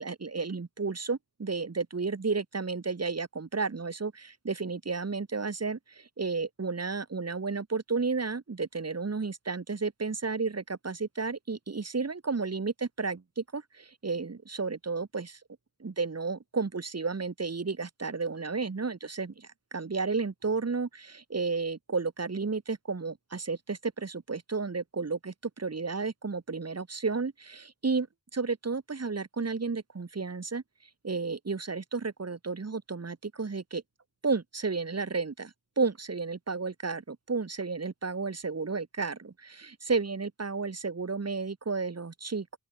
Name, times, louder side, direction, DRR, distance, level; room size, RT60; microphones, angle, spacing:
voice 1, 0.0-15.4 15.8-28.1 28.3-30.6 31.0-33.8 34.2-42.6, right 4 dB, 45° right, 1.4 m, -32 dB
open air
wide cardioid pair, 80°, 36 cm